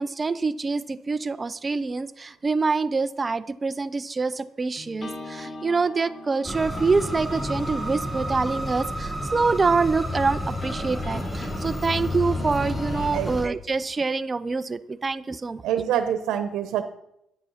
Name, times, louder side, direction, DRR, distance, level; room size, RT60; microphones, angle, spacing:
voice 1, 0.0-15.6, right 4 dB, 15° right, 14 dB, 0.4 m, -26 dB
sound 1, 4.8-13.1, left 1 dB, 25° left, 1.4 m, -41 dB
sound 2, 6.5-13.5, equal, ahead, 0.8 m, -30 dB
voice 2, 15.6-16.8, right 10 dB, 80° right, 8 dB, 0.9 m, -25 dB
12.5 x 9.0 x 5.7 m, 0.82 s
cardioid pair, 180°, 0 cm